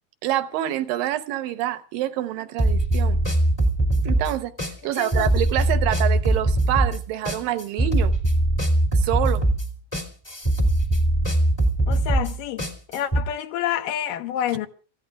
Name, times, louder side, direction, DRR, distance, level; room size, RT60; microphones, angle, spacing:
voice 1, 0.2-3.2 4.1-4.5 4.8-8.1 9.0-9.4, right 13 dB, 75° right, 2.3 m, -26 dB
sound 1, 2.6-13.2, right 1 dB, 15° left, 0.8 m, -21 dB
voice 2, 4.8-5.3 11.9-12.7 12.9-14.7, left 10 dB, 70° left, 2.5 m, -28 dB
29.5 x 15.5 x 2.4 m
omnidirectional pair, 4.4 m